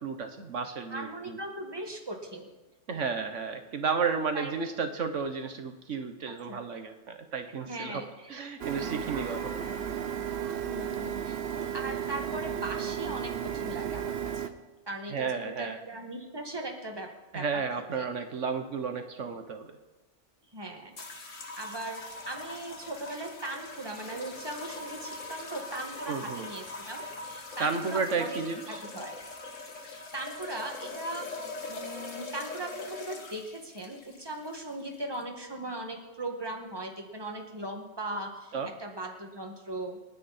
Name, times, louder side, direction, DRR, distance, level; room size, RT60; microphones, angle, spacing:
voice 1, 0.0-1.4 2.9-8.0 8.3-9.6 15.1-15.8 17.3-19.7 26.1-26.5 27.6-28.8 38.5-38.7, right 5 dB, 75° right, 7 dB, 1.4 m, -32 dB
voice 2, 0.9-2.5 4.3-4.6 6.3-6.6 7.6-8.3 10.6-11.4 11.7-14.5 14.9-17.1 17.3-17.6 18.0-18.1 20.5-21.2 21.6-28.4 28.7-29.1 29.8-31.3 31.7-40.0, right 1 dB, 20° right, 2 dB, 2.1 m, -39 dB
Printer, 8.6-14.5, right 8 dB, 55° right, 1.1 m, -34 dB
sound 1, 21.0-35.2, left 3 dB, 80° left, 2.1 m, -42 dB
29.0 x 9.9 x 4.3 m, 1.1 s
omnidirectional pair, 1.3 m